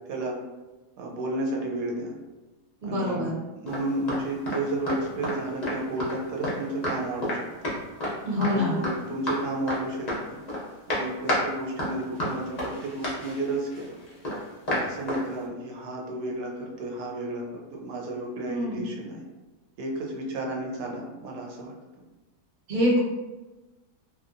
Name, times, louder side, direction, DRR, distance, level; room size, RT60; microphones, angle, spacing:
voice 1, 1.0-2.1 2.8-3.3 3.6-7.7 8.5-10.4 10.9-13.9 14.7-19.2 19.8-21.7, right 2 dB, 85° right, -1 dB, 1.2 m, -32 dB
voice 2, 2.8-3.4 8.3-8.8 18.5-18.8 22.7-23.0, left 1 dB, 40° right, -5 dB, 0.8 m, -25 dB
sound 1, 3.7-4.2 4.5-4.6 4.9-5.4 5.6-6.6 6.8-7.0 7.2-7.4 7.6-8.1 8.4-8.5 8.8-9.4 9.7-9.8 10.1-10.6 10.9-11.5 11.8-15.2, left 1 dB, 45° left, 0.5 m, -30 dB
2.7 x 2.6 x 2.5 m, 1.1 s
omnidirectional pair, 1.8 m